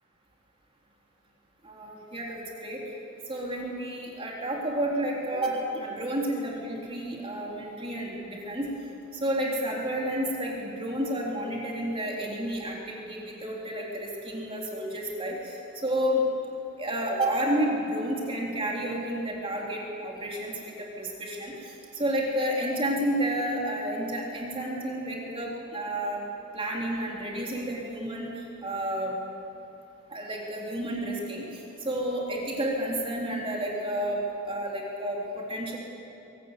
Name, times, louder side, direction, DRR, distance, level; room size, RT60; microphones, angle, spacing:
voice 1, 1.6-2.8 3.3-8.7 9.1-16.2 16.8-26.2 26.5-29.1 30.1-35.8, right 1 dB, 25° right, -3 dB, 3.6 m, -31 dB
24.5 x 18.0 x 8.2 m, 3.0 s
head